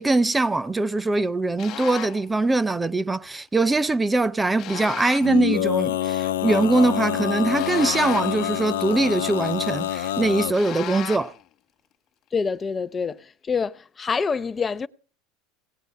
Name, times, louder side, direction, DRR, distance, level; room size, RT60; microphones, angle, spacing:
voice 1, 0.0-11.3, right 2 dB, 15° right, 0.6 m, -22 dB
sound 1, 1.6-2.3 4.6-5.4 7.6-8.5 10.5-11.4, left 12 dB, 50° left, 1.0 m, -35 dB
Male singing, 5.2-10.5, left 12 dB, 90° left, 0.9 m, -26 dB
voice 2, 12.3-14.9, left 5 dB, 25° left, 0.6 m, -26 dB
18.0 x 7.9 x 7.4 m
hypercardioid pair, 95°, 0 cm